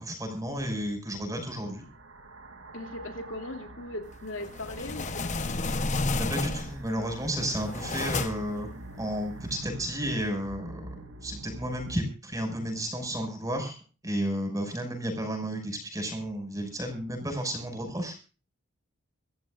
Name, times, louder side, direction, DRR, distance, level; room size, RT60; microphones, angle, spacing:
voice 1, 0.0-1.8 6.1-13.8 14.0-18.2, equal, 15° right, 5 dB, 6.0 m, -32 dB
sound 1, 1.6-12.0, right 2 dB, 75° right, 2.8 m, -45 dB
voice 2, 2.7-5.5, left 1 dB, 65° left, 5 dB, 2.9 m, -39 dB
sound 2, 4.4-6.9 7.4-8.6, left 3 dB, 35° left, 1.0 m, -31 dB
25.5 x 15.0 x 2.5 m, 0.36 s
head